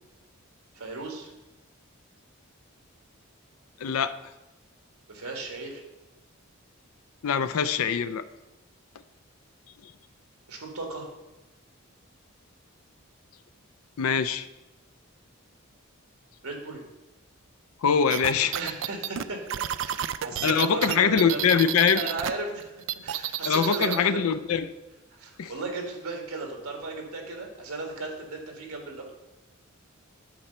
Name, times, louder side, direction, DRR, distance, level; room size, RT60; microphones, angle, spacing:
voice 1, 0.7-1.3 5.1-5.8 10.5-11.1 16.4-16.8 18.6-19.4 19.7-21.6 21.9-22.7 23.0-24.2 25.1-29.1, right 3 dB, 90° right, 2 dB, 1.8 m, -35 dB
voice 2, 3.8-4.2 7.2-8.2 9.8-9.9 14.0-14.5 17.8-18.6 20.4-22.0 23.5-24.7 25.4-25.5, left 6 dB, 80° left, 12 dB, 0.5 m, -23 dB
sound 1, 18.1-22.3 22.6-24.0, right 11 dB, 60° right, 0.3 m, -30 dB
8.7 x 4.3 x 6.7 m, 1.0 s
head